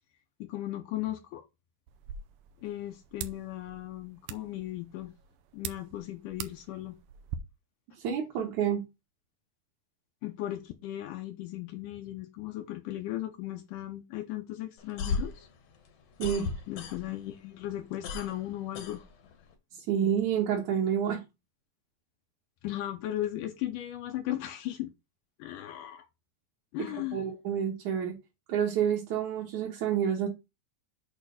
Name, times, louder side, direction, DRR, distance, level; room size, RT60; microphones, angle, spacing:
voice 1, 0.4-1.4 2.6-5.1 5.5-7.0 10.2-15.5 16.7-19.1 22.6-24.9 25.4-26.1 26.7-27.3, left 14 dB, 85° left, 1.9 m, -37 dB
sound 1, 1.9-7.4, right 9 dB, 80° right, 2.0 m, -44 dB
voice 2, 8.0-8.8 16.2-16.5 19.7-21.2 26.8-28.2 28.5-30.3, right 8 dB, 60° right, 2.2 m, -29 dB
sound 2, 14.8-17.3 17.6-19.5, left 4 dB, 70° left, 1.5 m, -35 dB
8.6 x 3.2 x 5.8 m
omnidirectional pair, 4.6 m